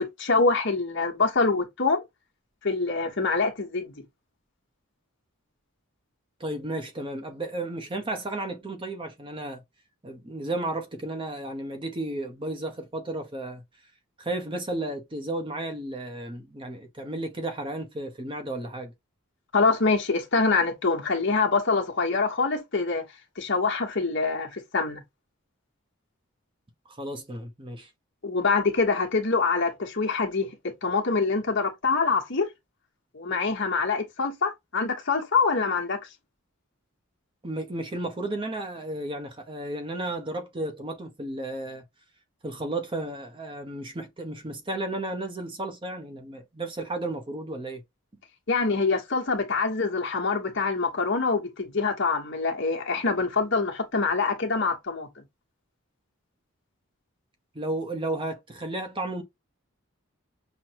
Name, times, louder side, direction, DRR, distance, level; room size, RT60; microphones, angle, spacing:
voice 1, 0.0-2.0 2.6-3.9 19.5-23.0 23.4-25.0 28.2-32.5 33.1-36.0 48.5-55.1, left 4 dB, 55° left, 1.1 m, -25 dB
voice 2, 6.4-9.6 10.0-13.6 14.2-18.9 26.9-27.9 37.4-41.8 42.4-47.8 57.5-59.2, right 2 dB, 25° right, 0.7 m, -33 dB
6.0 x 2.2 x 2.8 m
head